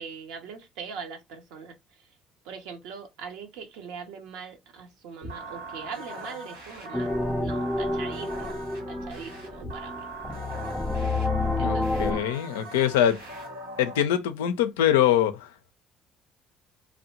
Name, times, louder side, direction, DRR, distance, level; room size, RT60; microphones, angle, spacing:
voice 1, 0.0-1.8 2.4-10.1 11.6-12.1, right 6 dB, 70° right, 0.7 m, -41 dB
sound 1, 5.2-14.0, right 1 dB, 85° right, 1.1 m, -40 dB
sound 2, 6.9-12.2, left 2 dB, 5° left, 0.4 m, -29 dB
voice 2, 11.6-13.2 13.8-15.7, left 10 dB, 75° left, 0.3 m, -24 dB
2.7 x 2.1 x 2.8 m
hypercardioid pair, 50°, 0 cm